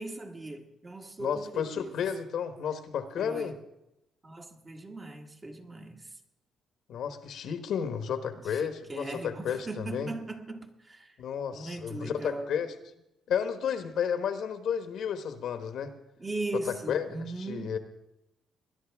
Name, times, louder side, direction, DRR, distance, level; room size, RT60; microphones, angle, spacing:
voice 1, 0.0-1.9 3.2-3.6 4.2-6.1 8.3-11.2 11.5-12.5 16.2-17.8, right 2 dB, 30° right, 1.7 m, -39 dB
voice 2, 1.2-3.6 6.9-10.1 11.2-12.7 13.3-15.9 16.7-17.1 17.4-17.8, left 8 dB, 70° left, 1.2 m, -32 dB
20.5 x 11.0 x 3.5 m
cardioid pair, 90°, 0 cm